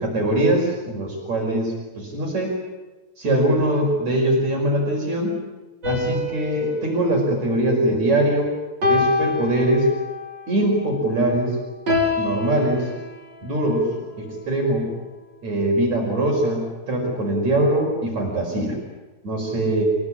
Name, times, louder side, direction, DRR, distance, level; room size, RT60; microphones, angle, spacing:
voice 1, 0.0-2.6 3.2-5.4 5.8-8.5 8.8-9.9 10.5-11.6 12.2-12.9 13.4-13.9 14.2-14.9 15.4-18.8 19.2-19.9, right 1 dB, 55° right, 0 dB, 6.3 m, -22 dB
sound 1, 5.8-8.2 8.8-10.3 11.9-13.5, left 3 dB, 30° right, 5.9 m, -26 dB
28.0 x 18.0 x 9.9 m, 1.2 s
omnidirectional pair, 3.7 m